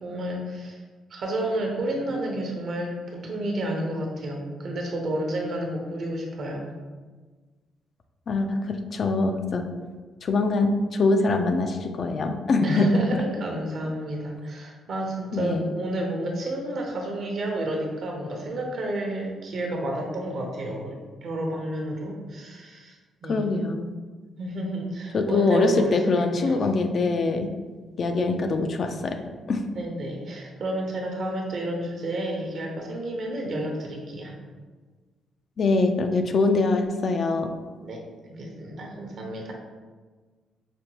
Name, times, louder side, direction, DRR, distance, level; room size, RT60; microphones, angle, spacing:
voice 1, 0.0-0.8 1.1-6.7 12.6-23.6 24.4-26.7 29.8-34.3 37.8-38.0 38.3-39.5, right 1 dB, 60° right, 0 dB, 0.8 m, -31 dB
voice 2, 8.3-9.6 10.2-13.1 15.3-15.7 23.3-23.9 25.1-27.5 28.0-29.2 29.5-29.6 35.6-37.5, left 3 dB, 50° left, 6 dB, 0.3 m, -23 dB
5.1 x 2.2 x 2.9 m, 1.4 s
cardioid pair, 90°, 0 cm